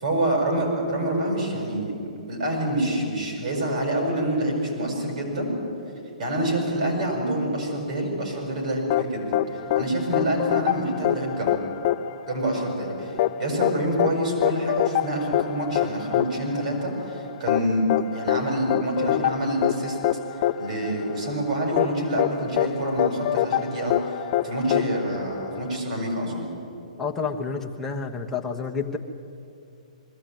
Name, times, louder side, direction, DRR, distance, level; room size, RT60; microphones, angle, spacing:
voice 1, 0.0-1.9 2.3-5.5 6.2-9.4 9.7-11.6 12.3-13.1 13.4-20.0 20.6-26.5, right 1 dB, 65° right, 0 dB, 7.1 m, -27 dB
sound 1, 8.9-25.8, left 12 dB, 40° left, 0.6 m, -26 dB
voice 2, 27.0-29.0, left 5 dB, 10° left, -1 dB, 1.2 m, -29 dB
21.5 x 14.5 x 9.3 m, 2.6 s
hypercardioid pair, 150°, 4 cm